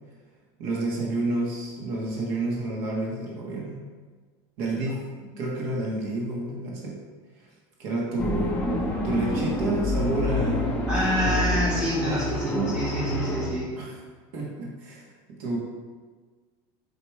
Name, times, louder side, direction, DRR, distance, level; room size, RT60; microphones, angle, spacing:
voice 1, 0.6-3.8 4.6-5.0 5.4-7.0 7.4-7.5 7.8-8.6 9.0-10.7 12.0-12.2 12.5-12.8 13.8-13.9 14.3-15.6, right 2 dB, 55° right, -3 dB, 1.4 m, -29 dB
sound 1, 8.2-13.5, left 1 dB, 10° left, 0.7 m, -27 dB
voice 2, 10.9-13.8, left 1 dB, 5° right, -8 dB, 1.6 m, -27 dB
4.9 x 4.8 x 4.6 m, 1.5 s
cardioid pair, 175°, 13 cm